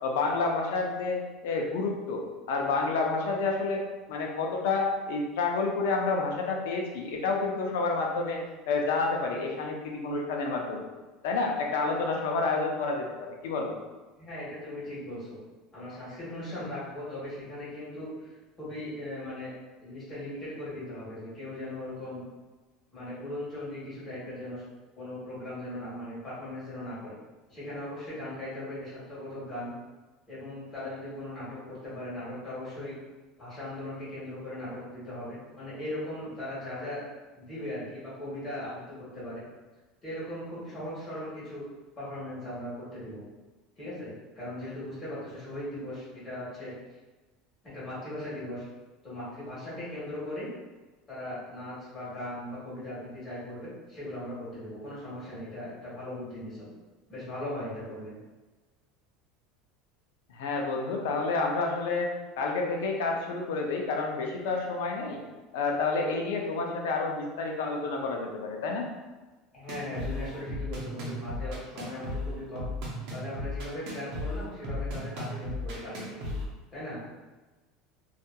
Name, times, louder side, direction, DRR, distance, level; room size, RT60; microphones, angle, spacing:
voice 1, 0.0-3.8 4.1-8.4 8.7-10.9 11.2-13.7 60.3-62.1 62.4-65.2 65.5-68.9, left 3 dB, 90° left, 1 dB, 0.5 m, -29 dB
voice 2, 14.2-15.4 15.7-18.3 18.6-19.5 19.8-22.2 22.9-24.6 24.9-27.2 27.5-29.7 30.3-33.0 33.4-37.0 37.4-39.4 40.0-41.6 42.0-43.2 43.8-46.7 47.7-48.7 49.0-50.5 51.1-56.7 57.1-58.1 69.5-72.7 73.1-76.3 76.7-77.0, left 1 dB, 20° left, -10 dB, 1.3 m, -38 dB
sound 1, 69.7-76.5, left 1 dB, 60° right, 0.7 m, -36 dB
2.7 x 2.4 x 2.2 m, 1.2 s
cardioid pair, 160°, 0 cm